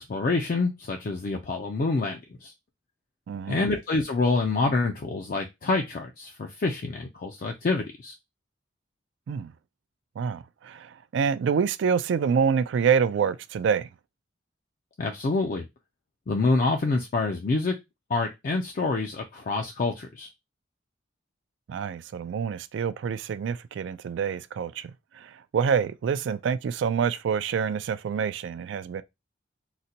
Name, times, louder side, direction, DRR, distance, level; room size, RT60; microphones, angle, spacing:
voice 1, 0.0-2.5 3.5-8.2 15.0-15.6 16.3-17.7 18.1-20.3, left 3 dB, 45° left, 0.4 m, -27 dB
voice 2, 3.3-3.7 9.3-9.5 10.2-13.9 21.7-24.9 25.2-29.0, right 6 dB, 65° right, 0.3 m, -27 dB
3.9 x 2.1 x 2.7 m
head